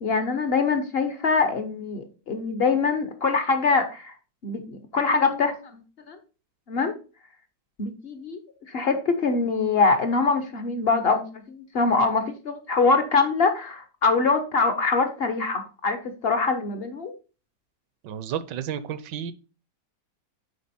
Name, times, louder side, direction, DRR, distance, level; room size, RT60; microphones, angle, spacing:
voice 1, 0.0-4.2 4.4-5.8 6.1-6.2 6.7-6.9 7.8-8.4 8.7-17.1, left 4 dB, 50° left, 0.7 m, -24 dB
voice 2, 18.0-19.3, right 9 dB, 75° right, 1.2 m, -32 dB
8.5 x 3.7 x 4.2 m
omnidirectional pair, 2.0 m